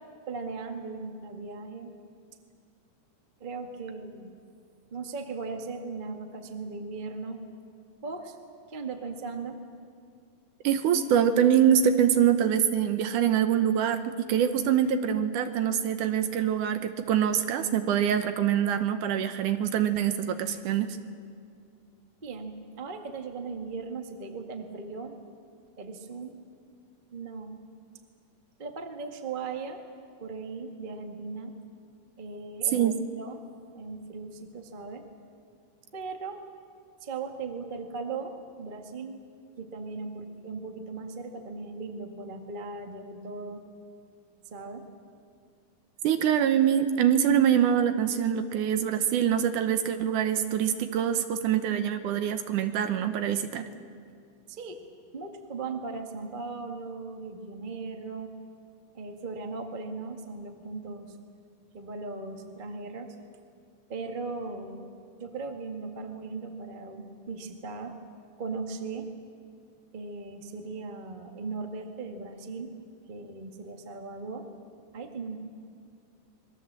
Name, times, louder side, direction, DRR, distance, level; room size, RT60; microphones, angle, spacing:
voice 1, 0.3-2.0 3.4-4.3 4.9-7.5 8.0-8.4 8.7-9.6 22.2-25.2 25.8-26.3 27.1-27.6 28.6-29.8 30.2-31.6 32.2-32.9 33.2-35.1 35.9-36.4 37.0-39.2 39.6-43.6 44.5-44.9 54.5-54.9 55.1-58.3 58.9-61.2 61.7-63.1 63.9-64.9 65.2-68.0 68.4-69.1 69.9-72.7 73.1-74.5 74.9-75.4, right 4 dB, 90° right, 4 dB, 0.4 m, -38 dB
voice 2, 10.6-20.9 32.7-33.0 46.0-53.7, right 9 dB, 70° right, 8 dB, 2.2 m, -24 dB
26.5 x 21.5 x 7.5 m, 2.3 s
omnidirectional pair, 4.3 m